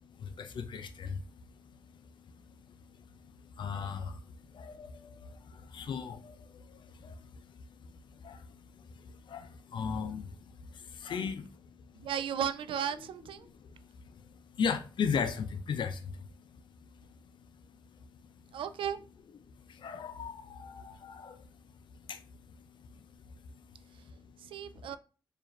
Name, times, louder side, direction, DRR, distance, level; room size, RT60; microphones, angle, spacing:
voice 1, 0.0-12.1 13.4-18.5 19.5-24.9, left 6 dB, 65° left, 0.6 m, -40 dB
voice 2, 12.0-13.5 18.5-19.0 24.4-25.0, right 9 dB, 80° right, 0.4 m, -35 dB
4.7 x 2.6 x 3.2 m
cardioid pair, 95°, 9 cm